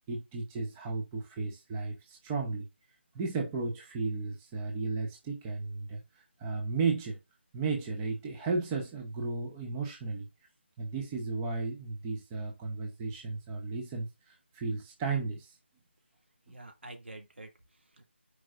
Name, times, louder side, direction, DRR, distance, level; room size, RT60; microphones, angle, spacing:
voice 1, 0.1-2.7 3.1-7.2 7.5-10.3 10.8-15.6, right 4 dB, 10° right, 0.8 m, -34 dB
voice 2, 16.5-18.1, right 2 dB, 70° right, 2.3 m, -48 dB
9.9 x 4.8 x 2.5 m
figure-of-eight pair, 165°, 6 cm